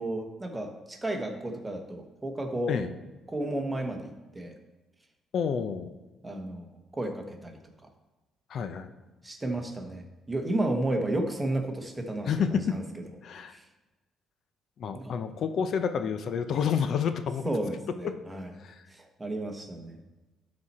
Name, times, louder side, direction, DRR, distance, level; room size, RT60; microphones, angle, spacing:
voice 1, 0.0-2.8 3.3-4.5 6.2-6.7 6.9-7.6 9.2-12.8 13.5-13.6 14.9-15.1 17.4-18.5 18.9-20.0, right 1 dB, 15° right, 4 dB, 1.1 m, -32 dB
voice 2, 5.3-5.9 8.5-8.9 12.3-12.8 13.2-13.6 14.8-17.5 18.0-18.1 18.6-18.9, left 7 dB, 60° left, 10 dB, 0.6 m, -29 dB
12.5 x 4.3 x 4.3 m, 1.1 s
cardioid pair, 110°, 0 cm